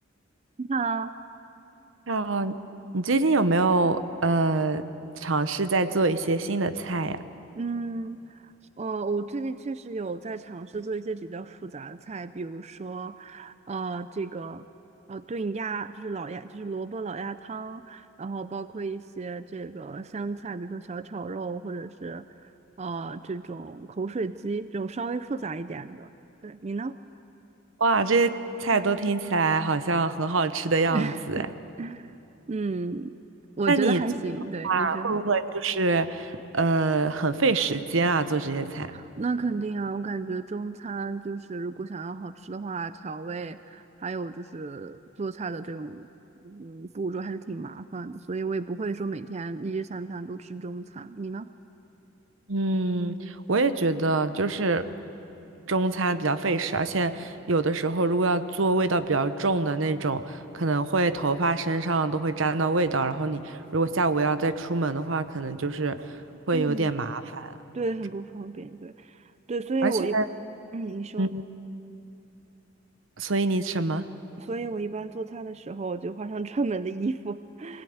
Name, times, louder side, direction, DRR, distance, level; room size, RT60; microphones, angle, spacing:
voice 1, 0.6-1.1 7.5-14.7 15.1-22.5 22.8-26.1 26.4-27.0 30.9-31.5 31.8-32.2 32.5-33.1 33.6-35.2 38.9-46.1 46.4-51.5 66.5-66.9 67.7-70.2 70.7-71.3 74.4-77.8, right 3 dB, 35° right, 13 dB, 0.4 m, -33 dB
voice 2, 2.1-2.5 2.9-4.8 5.2-7.2 27.8-28.3 28.6-31.4 33.7-34.0 34.6-38.9 52.5-54.9 55.7-66.0 66.5-67.5 69.8-70.2 71.2-71.4 73.2-74.0, right 3 dB, 80° right, 11 dB, 1.0 m, -25 dB
23.0 x 17.0 x 9.4 m, 2.8 s
head